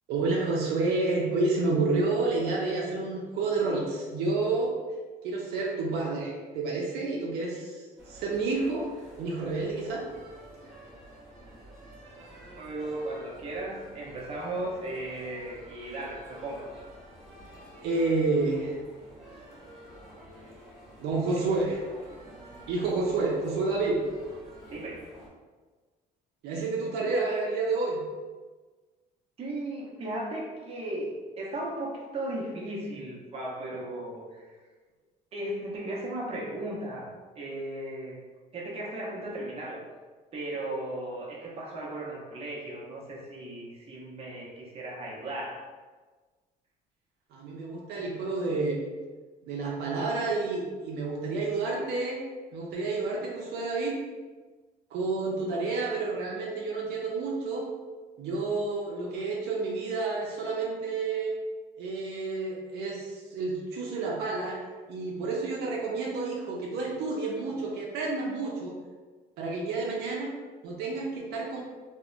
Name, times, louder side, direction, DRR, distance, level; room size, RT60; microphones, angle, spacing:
voice 1, 0.1-4.7 5.2-8.9 9.2-10.1 17.8-18.8 21.0-21.8 22.7-24.0 26.4-28.0 47.3-48.8 49.5-52.2 52.5-54.0 54.9-57.7 58.2-61.3 61.8-64.6 64.9-68.8 69.4-70.3 70.6-71.6, right 3 dB, 75° right, -3 dB, 0.5 m, -29 dB
sound 1, 8.0-25.3, equal, ahead, 1.1 m, -49 dB
voice 2, 12.6-16.9 24.7-25.1 29.4-34.5 35.3-38.2 38.5-39.8 40.3-45.6, right 1 dB, 35° right, -4 dB, 0.7 m, -36 dB
2.7 x 2.1 x 2.4 m, 1.4 s
cardioid pair, 110°, 17 cm